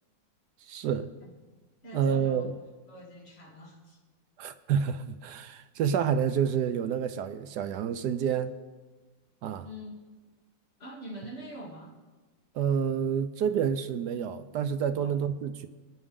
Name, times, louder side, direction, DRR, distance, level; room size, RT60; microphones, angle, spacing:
voice 1, 0.7-1.1 1.9-2.6 4.4-8.5 9.4-9.7 12.5-15.7, right 7 dB, 70° right, 1.1 m, -28 dB
voice 2, 1.8-2.5 2.9-4.0 9.6-9.9 10.8-11.9 15.0-15.1, equal, 30° left, 2.9 m, -44 dB
23.5 x 9.8 x 3.7 m
omnidirectional pair, 2.0 m